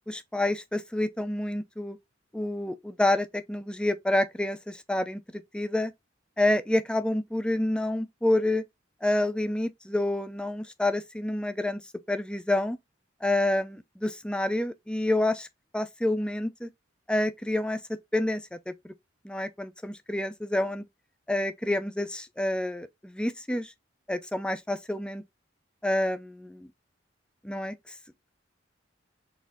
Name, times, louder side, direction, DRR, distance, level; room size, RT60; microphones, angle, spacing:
voice 1, 0.1-2.0 2.3-5.2 5.5-5.9 6.4-8.6 9.0-11.8 12.1-12.8 13.2-15.5 15.7-16.7 17.1-18.4 18.7-18.9 19.2-20.9 21.3-23.7 24.1-25.2 25.8-26.7 27.4-27.7, left 1 dB, 5° left, 0.3 m, -28 dB
4.2 x 2.4 x 3.5 m
head